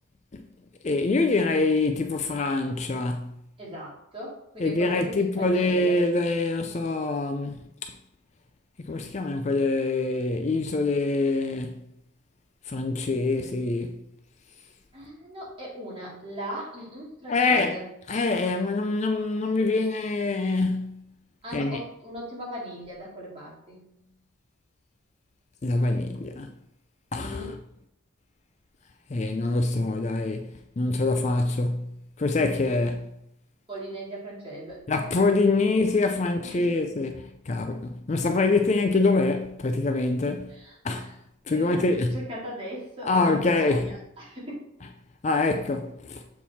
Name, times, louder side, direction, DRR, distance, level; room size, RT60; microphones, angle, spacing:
voice 1, 0.8-3.3 4.6-7.5 7.8-7.9 8.9-11.7 12.7-14.0 17.3-17.7 18.1-20.9 21.5-21.8 25.6-26.5 27.1-27.5 29.1-30.4 30.8-31.9 32.2-33.1 34.9-40.5 40.8-41.1 41.5-42.1 43.0-43.9 45.2-46.2, left 3 dB, 35° left, 0.4 m, -25 dB
voice 2, 3.6-6.0 14.9-17.9 21.4-23.8 27.1-27.6 33.7-34.8 36.4-36.7 40.5-41.1 41.5-44.7, equal, 25° right, 2.5 m, -39 dB
7.1 x 4.6 x 4.2 m
head